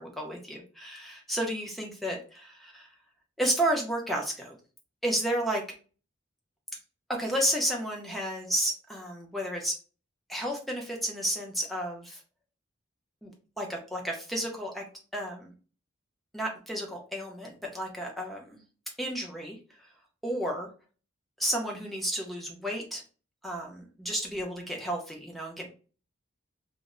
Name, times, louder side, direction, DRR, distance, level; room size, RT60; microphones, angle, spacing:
voice 1, 0.0-2.9 3.4-4.6 5.0-5.6 7.2-9.8 10.3-12.2 13.2-13.3 13.6-14.8 15.1-15.5 16.3-18.6 19.0-19.6 20.2-20.7 21.4-23.0 23.4-25.7, right 1 dB, ahead, 0 dB, 0.5 m, -32 dB
2.0 x 2.0 x 3.5 m, 0.37 s
head